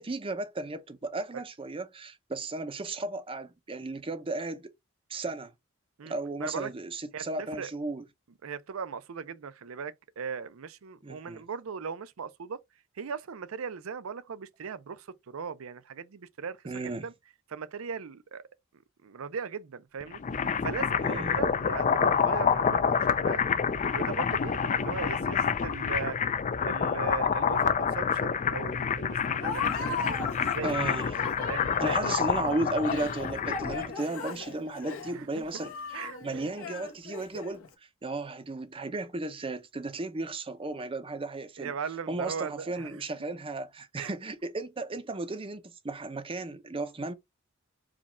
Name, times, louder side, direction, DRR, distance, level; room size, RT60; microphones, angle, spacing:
voice 1, 0.0-4.7 5.1-5.5 6.1-8.0 11.0-11.4 16.6-17.1 21.0-21.4 30.6-31.1 31.8-37.6 38.0-41.7 42.1-47.1, right 2 dB, 25° right, 0.6 m, -34 dB
voice 2, 6.4-6.7 7.1-7.7 8.4-12.6 13.0-17.1 17.5-18.4 19.0-20.2 20.6-23.4 23.9-26.2 26.6-30.8 31.5-32.1 35.1-35.4 35.9-36.4 41.6-42.9 44.0-44.1, right 6 dB, 75° right, 0.5 m, -38 dB
sound 1, 20.0-33.9, left 6 dB, 35° left, 0.4 m, -28 dB
Laughter, 29.4-37.7, left 5 dB, 75° left, 1.1 m, -37 dB
4.9 x 2.3 x 4.2 m
head